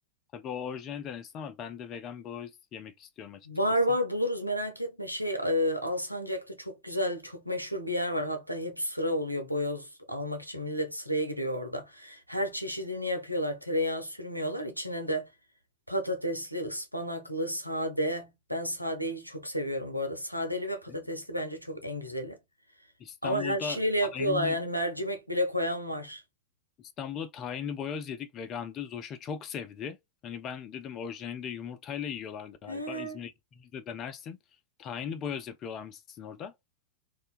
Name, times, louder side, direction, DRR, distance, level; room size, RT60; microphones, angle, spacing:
voice 1, 0.3-3.5 20.9-21.0 23.0-23.8 24.1-24.6 26.8-30.0 30.2-34.4 34.8-36.5, left 7 dB, 30° left, 0.3 m, -38 dB
voice 2, 3.5-15.3 15.9-22.4 23.2-26.2 32.7-33.2, equal, 90° left, 0.5 m, -31 dB
2.4 x 2.2 x 2.3 m
figure-of-eight pair, 90°, 0 cm